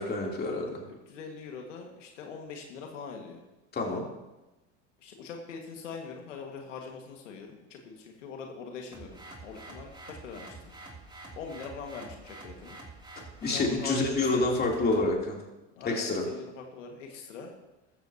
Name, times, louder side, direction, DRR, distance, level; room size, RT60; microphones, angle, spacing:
voice 1, 0.0-0.8 3.7-4.0 13.4-15.4 15.8-16.2, left 2 dB, 25° left, -1 dB, 3.3 m, -28 dB
voice 2, 0.9-3.4 5.0-10.7 11.3-12.8 13.4-14.5 15.8-17.5, left 5 dB, 85° left, 2 dB, 1.9 m, -42 dB
sound 1, 8.9-15.1, right 3 dB, 10° right, 2.9 m, -47 dB
14.5 x 14.0 x 2.9 m, 1.0 s
hypercardioid pair, 95°, 36 cm